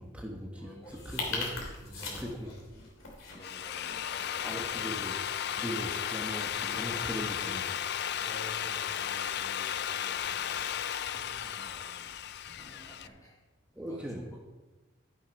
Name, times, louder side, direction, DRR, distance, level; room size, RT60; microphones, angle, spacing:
voice 1, 0.0-2.5 4.4-5.2 5.5-7.7 13.8-14.4, equal, 5° right, 0 dB, 1.1 m, -40 dB
voice 2, 0.5-2.4 3.2-4.6 8.1-11.9 12.5-13.4 13.8-14.4, equal, 15° left, -5 dB, 3.1 m, -51 dB
sound 1, 0.8-13.0, left 3 dB, 75° left, 2.8 m, -45 dB
Drill, 3.2-13.1, left 9 dB, 50° left, 0.4 m, -34 dB
14.0 x 6.2 x 5.3 m, 1.2 s
head